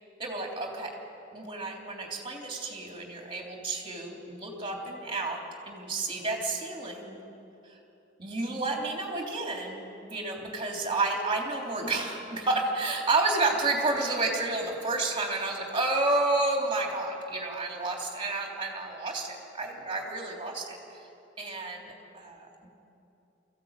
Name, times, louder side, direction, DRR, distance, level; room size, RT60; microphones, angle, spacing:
voice 1, 0.2-0.9 1.3-5.4 5.6-7.2 8.2-9.8 10.1-21.0 21.4-21.9 22.1-22.7, right 2 dB, 25° right, 1 dB, 3.5 m, -30 dB
24.0 x 15.0 x 9.1 m, 2.9 s
head